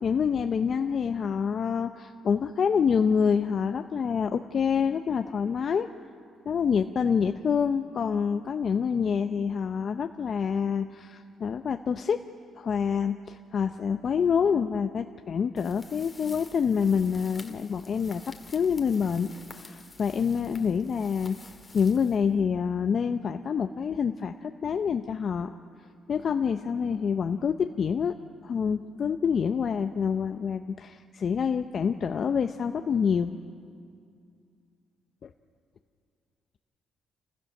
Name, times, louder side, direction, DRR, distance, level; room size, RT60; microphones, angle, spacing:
voice 1, 0.0-5.9 6.5-12.2 12.6-18.2 18.5-19.3 19.6-21.4 21.7-25.6 26.1-28.1 28.4-33.4 35.2-35.3, left 6 dB, 50° left, 7 dB, 0.6 m, -27 dB
sound 1, 15.6-22.7, left 3 dB, 25° left, 1.8 m, -50 dB
28.0 x 15.5 x 6.6 m, 2.3 s
cardioid pair, 90°, 0 cm